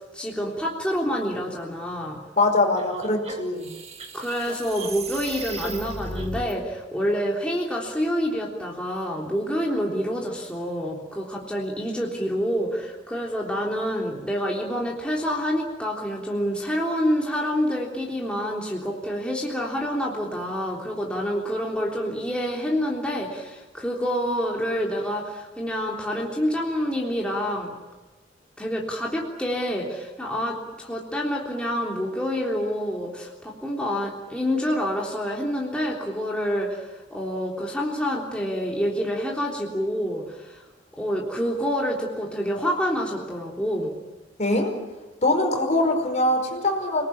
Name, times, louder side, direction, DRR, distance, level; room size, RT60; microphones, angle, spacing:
voice 1, 0.1-2.2 4.1-27.7 28.6-40.6 41.0-43.9, equal, 5° left, -3 dB, 3.5 m, -27 dB
voice 2, 2.4-3.7 44.4-44.7 45.2-47.0, left 2 dB, 40° left, 4 dB, 4.9 m, -22 dB
sound 1, 2.8-6.5, right 2 dB, 35° right, 2.5 m, -36 dB
29.0 x 20.0 x 8.7 m, 1.1 s
head